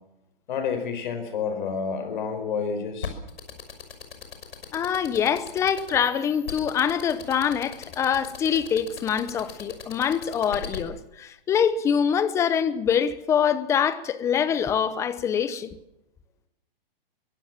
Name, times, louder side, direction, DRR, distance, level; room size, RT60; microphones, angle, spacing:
voice 1, 0.5-3.2, left 6 dB, 55° left, 4.9 m, -29 dB
sound 1, 3.0-10.8, left 7 dB, 85° left, 6.1 m, -37 dB
voice 2, 4.7-15.7, left 8 dB, 10° left, 0.8 m, -24 dB
23.5 x 17.5 x 7.4 m
hypercardioid pair, 160°, 29 cm